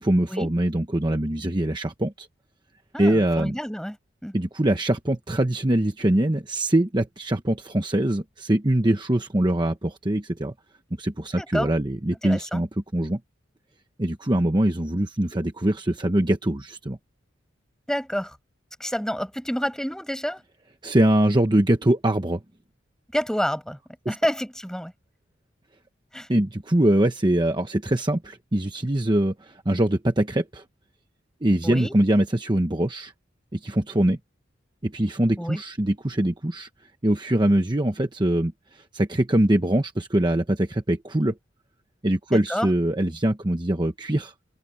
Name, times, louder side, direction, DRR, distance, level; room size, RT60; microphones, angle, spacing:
voice 1, 0.0-2.3 3.0-3.6 4.3-10.5 11.0-12.7 12.9-13.2 14.0-17.0 20.8-22.4 24.0-24.2 26.3-30.6 31.4-33.1 33.5-34.2 34.8-36.7 37.0-41.3 42.0-44.3, right 1 dB, 25° right, 1.0 m, -23 dB
voice 2, 2.9-4.0 4.2-4.3 11.4-11.7 12.2-12.6 17.9-18.4 18.8-20.4 23.1-23.8 24.1-24.9 26.1-26.3 31.6-31.9 35.4-35.6 42.3-42.7, equal, 5° left, 7.0 m, -28 dB
head